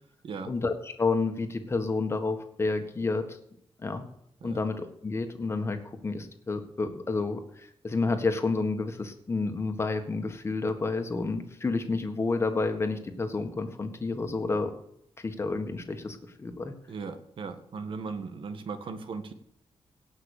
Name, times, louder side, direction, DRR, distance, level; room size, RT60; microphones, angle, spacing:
voice 1, 0.4-3.4 3.8-4.0 4.4-14.7 15.2-16.7, left 3 dB, 25° left, 6 dB, 1.7 m, -30 dB
voice 2, 16.9-19.3, right 4 dB, 60° right, 9 dB, 1.6 m, -37 dB
17.5 x 6.0 x 6.6 m, 0.73 s
wide cardioid pair, 140°, 10 cm